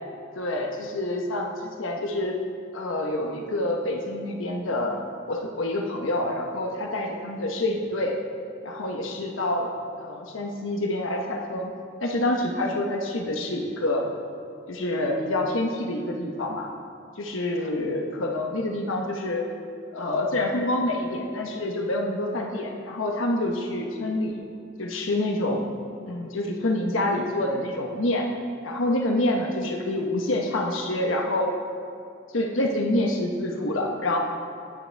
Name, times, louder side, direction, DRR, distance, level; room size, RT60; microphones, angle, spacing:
voice 1, 0.4-2.4 2.7-8.2 8.6-9.7 10.0-11.7 12.0-14.1 14.7-16.7 17.2-19.5 19.9-24.4 24.8-25.7 26.1-28.3 28.6-31.5 32.3-34.2, left 1 dB, 80° left, 1 dB, 1.1 m, -27 dB
19.0 x 9.0 x 3.4 m, 2.4 s
head